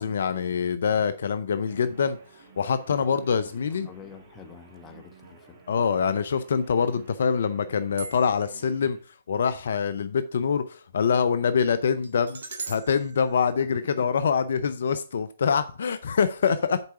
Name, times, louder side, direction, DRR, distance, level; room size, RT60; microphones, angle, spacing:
voice 1, 0.0-2.2 2.6-3.9 5.7-9.0 9.3-12.4 12.7-16.8, left 6 dB, 65° left, 0.6 m, -25 dB
sound 1, 1.6-9.0, right 5 dB, 45° right, 2.7 m, -52 dB
voice 2, 3.8-5.6 13.6-14.1, left 7 dB, 20° left, 1.1 m, -46 dB
sound 2, 8.0-8.6 12.0-14.3, right 4 dB, 70° right, 2.1 m, -41 dB
6.8 x 4.7 x 5.8 m
hypercardioid pair, 135°, 0 cm